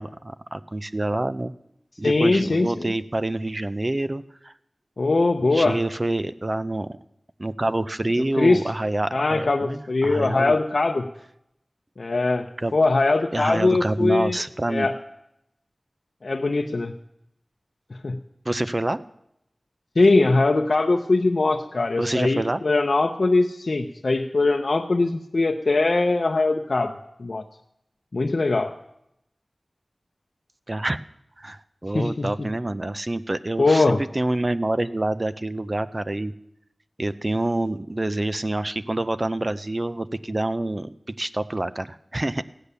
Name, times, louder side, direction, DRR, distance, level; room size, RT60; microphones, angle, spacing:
voice 1, 0.0-1.5 2.0-4.5 5.5-6.9 7.4-10.5 12.6-12.7 13.3-14.9 18.5-19.0 22.0-22.6 30.7-31.0 31.4-36.3 37.0-42.4, right 1 dB, 35° right, 13 dB, 0.5 m, -27 dB
voice 2, 2.0-2.9 5.0-5.8 8.4-8.6 9.1-11.1 12.0-12.5 12.7-14.4 14.7-15.0 16.2-16.9 18.0-18.2 20.0-26.9 27.2-27.4 28.1-28.7 31.9-32.3 33.6-34.0, left 3 dB, 70° left, 3 dB, 0.7 m, -21 dB
15.0 x 9.9 x 6.8 m, 0.79 s
wide cardioid pair, 55°, 0 cm